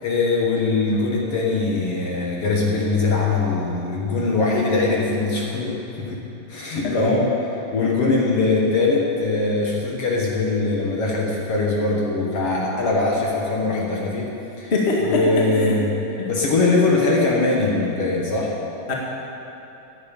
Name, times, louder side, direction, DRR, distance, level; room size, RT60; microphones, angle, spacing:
voice 1, 0.0-6.2 6.5-7.2 7.7-14.3 14.6-14.7 15.0-16.0 16.3-18.5, left 3 dB, 55° left, -3 dB, 2.0 m, -21 dB
voice 2, 6.8-7.2 8.0-8.1 14.7-15.7 16.2-16.3 18.9-19.0, left 2 dB, 30° left, -3 dB, 1.2 m, -23 dB
10.5 x 8.9 x 8.7 m, 3.0 s
omnidirectional pair, 3.8 m